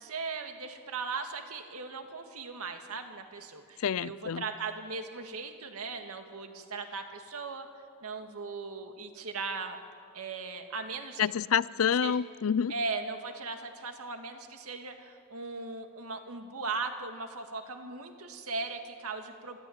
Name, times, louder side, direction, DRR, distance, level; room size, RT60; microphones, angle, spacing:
voice 1, 0.0-7.7 8.0-9.8 10.1-11.2 12.0-12.2 12.7-19.6, right 4 dB, 85° right, 2.0 m, -38 dB
voice 2, 3.8-4.4 11.2-12.7, left 8 dB, 75° left, 0.4 m, -28 dB
27.5 x 14.0 x 8.7 m
head